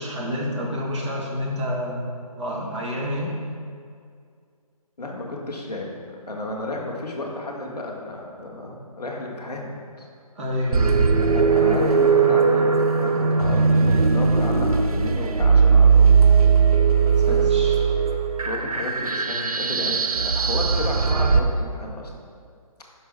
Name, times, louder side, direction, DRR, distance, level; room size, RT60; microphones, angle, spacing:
voice 1, 0.0-3.3 10.4-11.1 17.2-17.8, equal, 50° right, -3 dB, 2.1 m, -29 dB
voice 2, 5.0-10.1 11.3-16.3 17.3-17.5 18.4-22.2, left 2 dB, 5° left, -14 dB, 0.3 m, -32 dB
sound 1, 10.7-21.4, right 5 dB, 65° right, 0.7 m, -18 dB
12.0 x 5.5 x 4.1 m, 2.2 s
hypercardioid pair, 160°, 20 cm